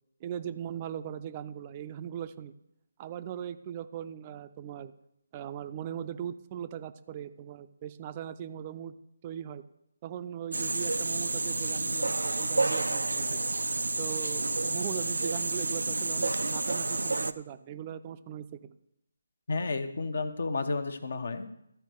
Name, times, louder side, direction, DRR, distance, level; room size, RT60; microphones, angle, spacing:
voice 1, 0.2-2.5 3.0-4.9 5.3-8.9 9.2-9.6 10.0-13.4 14.0-18.7, right 9 dB, 30° right, 10 dB, 0.5 m, -39 dB
sound 1, 10.5-17.3, right 3 dB, 80° right, 0.4 m, -30 dB
voice 2, 19.5-21.5, left 3 dB, 65° left, 9 dB, 1.0 m, -32 dB
13.5 x 4.6 x 6.5 m, 0.79 s
figure-of-eight pair, 150°, 0 cm